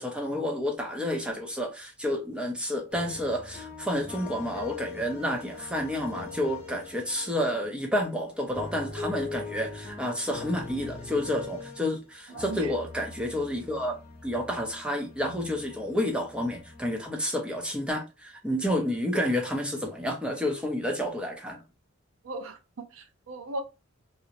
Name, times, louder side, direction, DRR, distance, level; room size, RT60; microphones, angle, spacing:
voice 1, 0.0-14.0 14.2-21.6, equal, 5° right, 0.5 m, -30 dB
sound 1, 2.9-7.8 8.3-12.0 12.3-17.1, left 4 dB, 30° left, 0.8 m, -42 dB
voice 2, 12.3-12.7 22.2-23.6, right 2 dB, 90° right, 0.5 m, -38 dB
2.4 x 2.0 x 2.6 m
head